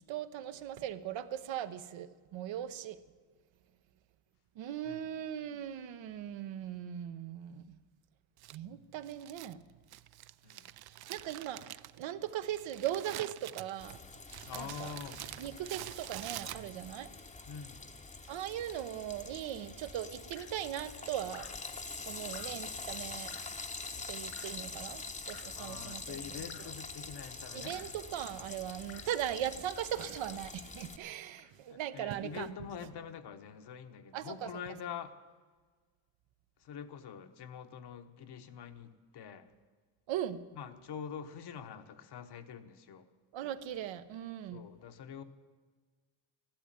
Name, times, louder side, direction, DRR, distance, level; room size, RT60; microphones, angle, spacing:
voice 1, 0.0-3.0 4.5-7.8 8.5-9.6 10.8-14.0 14.5-14.9 15.4-17.1 18.3-21.5 22.1-23.3 24.1-26.5 27.5-32.5 34.1-34.5 40.1-40.4 43.3-44.6, right 11 dB, 80° right, 1.0 m, -39 dB
Crumpling crinkling, 8.4-17.0, right 14 dB, 60° right, 0.5 m, -47 dB
Frying (food), 13.8-31.0, left 3 dB, 15° left, 0.8 m, -45 dB
voice 2, 14.4-15.2 17.5-17.8 25.5-27.8 31.7-35.1 36.6-39.5 40.5-43.0 44.5-45.2, left 7 dB, 60° left, 1.2 m, -45 dB
Drip, 20.3-20.6 21.3-21.7 22.3-22.7 23.3-23.6 24.3-24.7 25.3-25.7 26.5-26.8 27.7-28.0 28.9-29.2 30.1-30.5 31.4-31.6, left 14 dB, 85° left, 0.7 m, -54 dB
13.5 x 12.0 x 9.0 m
cardioid pair, 130°, 45 cm